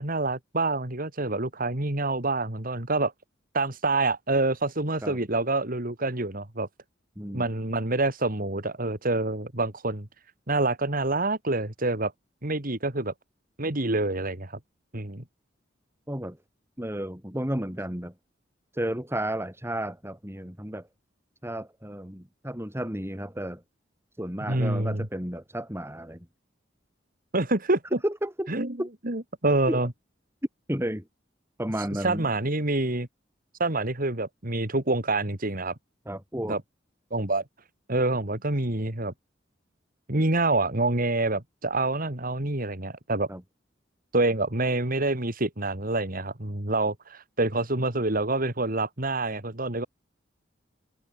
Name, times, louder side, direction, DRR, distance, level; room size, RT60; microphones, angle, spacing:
voice 1, 0.0-3.1 3.5-6.7 7.3-10.1 10.5-12.1 12.4-13.1 13.6-14.6 14.9-15.2 24.5-25.1 27.3-27.8 28.5-28.8 29.0-29.9 31.8-33.1 33.6-35.7 36.5-36.6 37.1-37.4 37.9-39.1 40.1-43.3 44.1-49.9, right 2 dB, 50° right, 3.1 m, -27 dB
voice 2, 7.2-7.5 16.1-16.4 16.8-18.1 18.7-20.9 21.4-23.6 24.2-26.3 28.0-28.5 28.8-28.9 29.7-29.8 30.7-31.1 31.6-32.3 36.1-36.6 43.3-43.4, right 1 dB, 15° right, 5.7 m, -32 dB
head